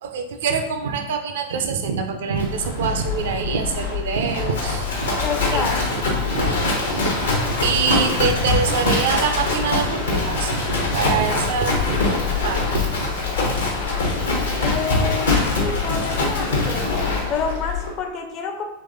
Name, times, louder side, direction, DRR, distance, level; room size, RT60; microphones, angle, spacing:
voice 1, 0.0-5.2 5.5-5.7 6.2-12.1 12.4-13.1 13.4-13.6, right 5 dB, 60° right, 5 dB, 0.4 m, -25 dB
Livestock farm animals working animals, 2.3-17.9, left 3 dB, 65° left, 0.9 m, -23 dB
voice 2, 5.2-6.0 14.6-16.9 17.3-18.6, left 6 dB, 35° left, 3 dB, 0.5 m, -28 dB
3.3 x 3.1 x 2.6 m, 0.92 s
figure-of-eight pair, 90°, 0 cm